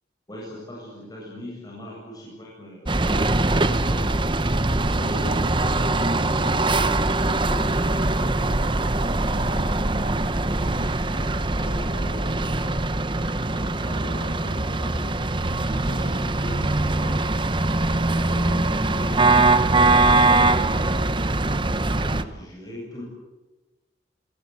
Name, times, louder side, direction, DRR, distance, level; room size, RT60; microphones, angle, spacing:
voice 1, 0.3-4.1 4.9-8.5 9.3-11.3 11.5-12.8 13.4-15.3 15.6-17.2 17.9-21.0 21.9-23.0, equal, 20° left, -4 dB, 8.0 m, -39 dB
sound 1, 2.9-22.2, right 2 dB, 25° right, 0.9 m, -22 dB
27.0 x 19.0 x 8.2 m, 1.1 s
head